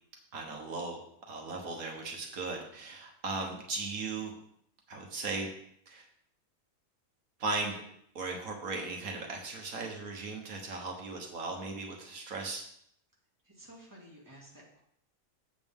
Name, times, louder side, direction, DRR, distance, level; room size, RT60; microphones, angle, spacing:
voice 1, 0.3-1.0 1.3-4.3 4.9-5.5 5.9-6.0 7.4-7.8 8.1-12.6, right 3 dB, 80° right, 1 dB, 1.8 m, -37 dB
voice 2, 13.5-14.8, right 1 dB, 15° right, -4 dB, 2.3 m, -53 dB
8.0 x 7.7 x 3.6 m, 0.69 s
omnidirectional pair, 1.5 m